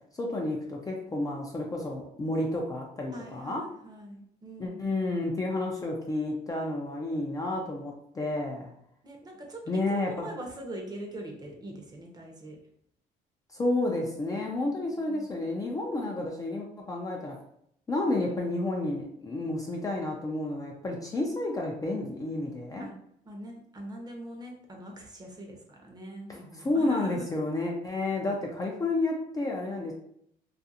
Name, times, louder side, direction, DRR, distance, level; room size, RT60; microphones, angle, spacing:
voice 1, 0.1-3.7 4.6-8.7 9.7-10.3 13.5-17.4 17.9-22.9 26.3-29.9, left 2 dB, 20° left, -1 dB, 0.4 m, -31 dB
voice 2, 3.1-4.8 9.0-9.6 9.9-12.6 15.0-15.3 22.8-22.9 23.3-27.2, right 1 dB, 25° right, 1 dB, 0.7 m, -42 dB
2.4 x 2.4 x 2.7 m, 0.72 s
cardioid pair, 110°, 17 cm